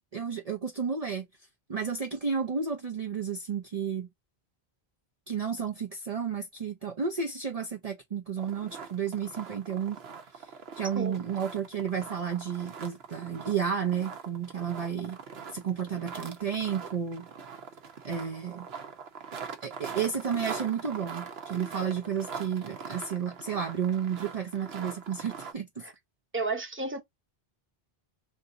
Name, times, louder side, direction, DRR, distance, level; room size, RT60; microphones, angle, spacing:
voice 1, 0.1-1.3 1.7-4.1 5.3-10.0 10.3-10.5 10.7-15.2 15.5-17.3 18.0-18.7 19.6-25.8, right 7 dB, 40° right, 0.7 m, -32 dB
sound 1, 8.4-25.5, right 6 dB, 75° right, 1.1 m, -42 dB
voice 2, 26.3-27.0, right 3 dB, 15° right, 0.8 m, -32 dB
3.3 x 2.6 x 3.7 m
omnidirectional pair, 1.1 m